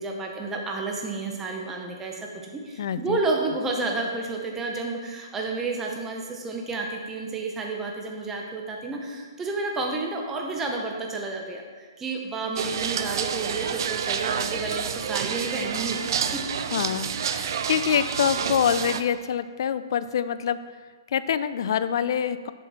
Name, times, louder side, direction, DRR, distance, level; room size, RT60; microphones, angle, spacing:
voice 1, 0.0-16.1 16.3-16.4 17.4-17.6, right 3 dB, 10° right, 0 dB, 0.9 m, -31 dB
voice 2, 2.8-3.2 16.7-20.6 21.1-22.5, left 8 dB, 60° left, 13 dB, 0.4 m, -25 dB
sound 1, 12.6-19.0, right 7 dB, 60° right, 0.5 m, -29 dB
7.1 x 6.5 x 4.3 m, 1.5 s
hypercardioid pair, 150°, 2 cm